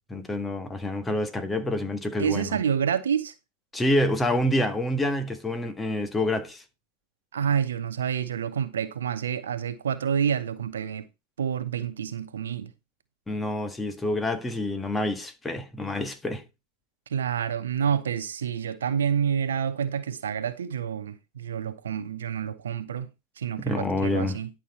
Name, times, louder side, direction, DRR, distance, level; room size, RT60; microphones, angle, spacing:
voice 1, 0.1-2.6 3.7-6.6 13.3-16.4 23.6-24.4, left 1 dB, 10° left, 1.7 m, -27 dB
voice 2, 2.2-3.3 7.3-11.0 11.4-12.7 17.1-23.1 23.4-24.5, right 8 dB, 65° right, 0.8 m, -28 dB
11.0 x 6.1 x 4.3 m
figure-of-eight pair, 90°, 0 cm